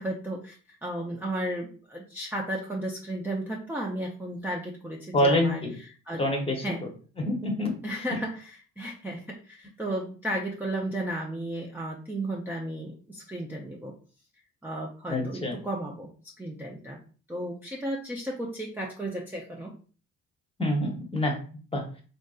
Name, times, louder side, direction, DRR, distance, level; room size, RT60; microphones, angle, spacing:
voice 1, 0.0-5.6 6.1-6.2 6.6-6.8 7.8-14.0 14.6-17.0 17.3-19.7, right 1 dB, 5° right, -2 dB, 0.4 m, -34 dB
voice 2, 5.1-5.7 6.2-6.6 7.2-7.7 15.1-15.6 20.6-21.4 21.7-21.8, left 1 dB, 20° left, 2 dB, 0.8 m, -26 dB
3.4 x 2.6 x 2.3 m, 0.39 s
cardioid pair, 90°, 30 cm